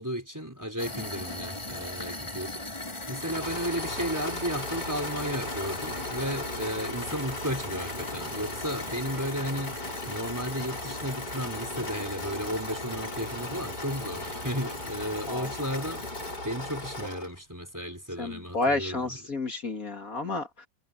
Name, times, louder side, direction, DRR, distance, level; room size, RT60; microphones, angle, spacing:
voice 1, 0.0-2.7 3.1-16.0 16.4-19.4, equal, 10° right, 4.3 m, -34 dB
sound 1, 0.8-16.4, left 2 dB, 15° left, 2.3 m, -40 dB
Engine / Mechanisms, 3.1-17.4, left 2 dB, 70° left, 6.8 m, -37 dB
voice 2, 18.2-20.7, left 2 dB, 55° left, 2.6 m, -30 dB
omnidirectional pair, 1.9 m